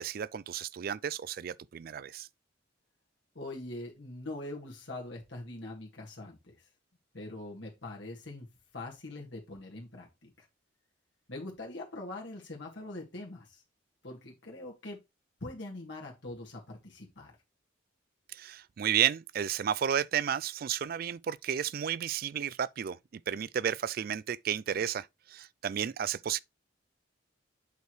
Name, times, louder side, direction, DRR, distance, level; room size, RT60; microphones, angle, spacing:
voice 1, 0.0-2.3 18.3-26.4, right 9 dB, 50° right, 0.3 m, -32 dB
voice 2, 3.4-6.7 7.1-8.5 8.7-10.5 11.3-13.6 14.0-15.0 15.4-17.3, left 2 dB, 70° left, 1.9 m, -43 dB
8.1 x 4.6 x 3.2 m
head